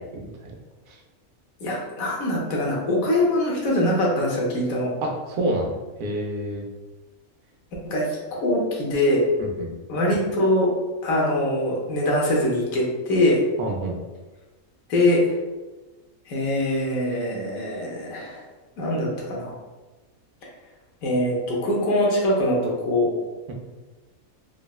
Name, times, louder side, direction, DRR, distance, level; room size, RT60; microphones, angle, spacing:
voice 1, 0.1-0.5 0.9-1.0 5.0-6.6 9.4-9.7 13.6-14.0, right 1 dB, 85° right, 1 dB, 1.0 m, -28 dB
voice 2, 1.6-4.9 7.8-8.1 8.3-9.2 9.9-10.7 11.0-13.5 14.9-15.3 16.3-18.4 18.8-19.5 21.0-23.1, left 1 dB, 80° left, -3 dB, 1.2 m, -23 dB
3.8 x 2.1 x 2.2 m, 1.2 s
omnidirectional pair, 1.4 m